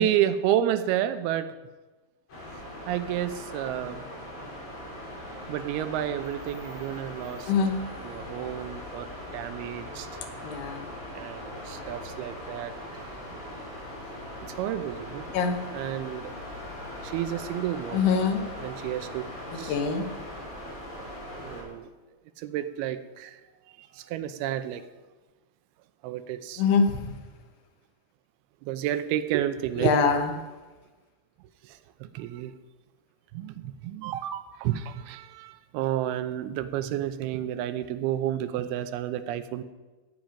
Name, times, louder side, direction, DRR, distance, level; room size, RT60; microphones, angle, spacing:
voice 1, 0.0-1.5 2.9-4.1 5.5-7.5 8.0-10.1 11.1-12.7 13.3-13.4 14.4-15.3 15.7-16.3 17.0-18.0 18.6-19.3 19.6-19.8 21.4-21.9 22.4-23.4 23.8-24.8 26.0-26.6 28.6-30.0 31.6-32.5 33.3-39.6, right 11 dB, 85° right, 11 dB, 2.6 m, -30 dB
sound 1, 2.3-21.6, left 1 dB, 50° left, 6.1 m, -40 dB
voice 2, 10.4-10.8 15.3-15.6 17.9-18.4 19.7-20.1 26.6-27.1 29.8-30.3, left 5 dB, 90° left, 4 dB, 3.2 m, -23 dB
14.5 x 8.8 x 5.2 m, 1.2 s
omnidirectional pair, 4.5 m